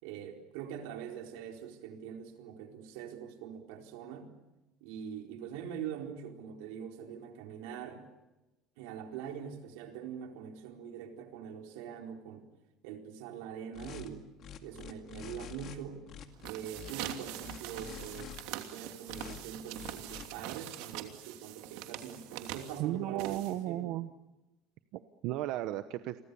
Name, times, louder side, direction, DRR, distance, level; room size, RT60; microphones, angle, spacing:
voice 1, 0.0-4.3 4.8-8.0 8.8-12.5 12.8-14.2 14.6-16.1 16.4-23.9, right 8 dB, 90° right, 3 dB, 4.4 m, -43 dB
sound 1, 13.7-14.1 14.4-15.8 16.1-16.9 17.4-18.4 19.1-19.4 19.7-20.3, left 9 dB, 40° left, 2.2 m, -47 dB
sound 2, 16.3-23.8, right 13 dB, 70° right, 2.9 m, -44 dB
voice 2, 22.8-24.1 24.9-26.2, right 14 dB, 55° right, 10 dB, 1.0 m, -35 dB
30.0 x 23.5 x 7.0 m, 1.0 s
cardioid pair, 175°, 0 cm